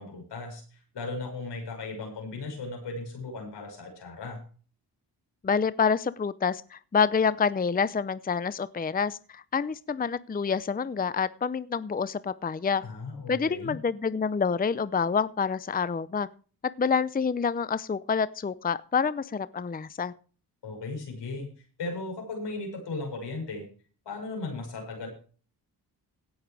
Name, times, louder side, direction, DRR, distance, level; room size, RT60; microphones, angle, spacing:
voice 1, 0.0-4.4 12.8-13.8 20.6-21.5 21.8-23.7 24.0-25.1, left 3 dB, 85° left, 3 dB, 6.4 m, -36 dB
voice 2, 5.4-12.8 13.3-16.3 16.8-20.1, left 6 dB, 20° left, 16 dB, 0.6 m, -27 dB
17.0 x 7.2 x 4.9 m, 0.39 s
cardioid pair, 75°, 41 cm